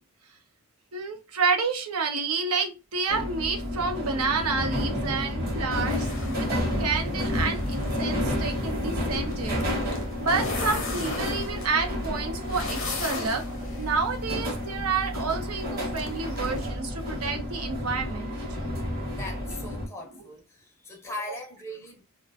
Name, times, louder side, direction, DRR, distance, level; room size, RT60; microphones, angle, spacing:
voice 1, 0.9-9.6 10.2-13.4 13.8-18.4, right 4 dB, 80° right, 0.6 m, -29 dB
sound 1, 3.1-19.9, left 1 dB, 45° right, 0.9 m, -30 dB
sound 2, 5.8-16.6, left 4 dB, 60° left, 0.7 m, -39 dB
voice 2, 19.1-22.0, left 1 dB, 10° left, 0.5 m, -40 dB
2.4 x 2.1 x 2.4 m
head